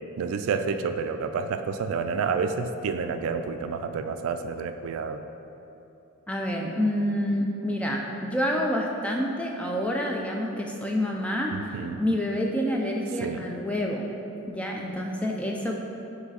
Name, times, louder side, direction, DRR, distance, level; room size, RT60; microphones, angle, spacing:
voice 1, 0.2-5.2 11.5-12.0 13.2-13.4, right 5 dB, 75° right, 9 dB, 0.3 m, -29 dB
voice 2, 6.3-11.5 12.0-14.0 14.5-15.7, equal, 5° left, -1 dB, 0.4 m, -28 dB
7.2 x 3.2 x 4.1 m, 2.9 s
head